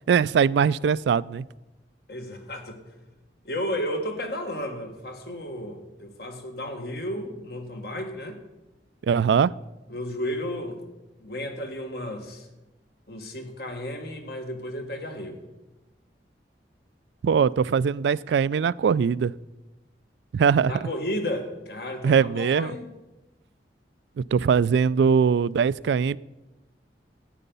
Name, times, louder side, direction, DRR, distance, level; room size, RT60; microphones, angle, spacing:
voice 1, 0.1-1.4 9.1-9.5 17.2-19.3 20.3-20.7 22.0-22.7 24.2-26.2, right 6 dB, 75° right, 21 dB, 0.3 m, -21 dB
voice 2, 2.1-2.8 3.4-8.4 9.9-10.8 11.2-12.5 13.1-15.4 20.6-22.8, left 1 dB, 60° left, 5 dB, 1.6 m, -33 dB
14.0 x 9.1 x 5.4 m, 1.1 s
head